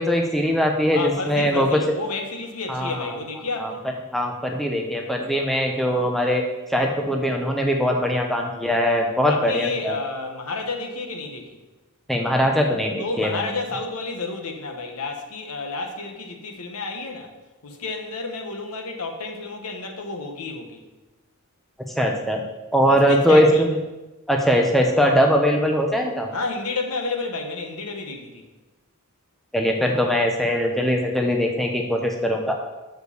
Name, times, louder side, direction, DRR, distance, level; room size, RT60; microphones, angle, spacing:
voice 1, 0.0-1.7 2.7-3.0 3.6-3.7 4.1-6.4 6.7-9.9 12.1-13.3 22.0-22.4 22.7-23.7 24.3-26.3 29.5-32.5, equal, ahead, 1 dB, 0.7 m, -21 dB
voice 2, 0.9-3.8 8.3-8.6 9.3-11.6 13.0-17.3 17.6-20.8 22.9-23.6 26.3-28.4, left 3 dB, 85° left, 4 dB, 1.2 m, -31 dB
6.4 x 5.0 x 6.8 m, 1.1 s
head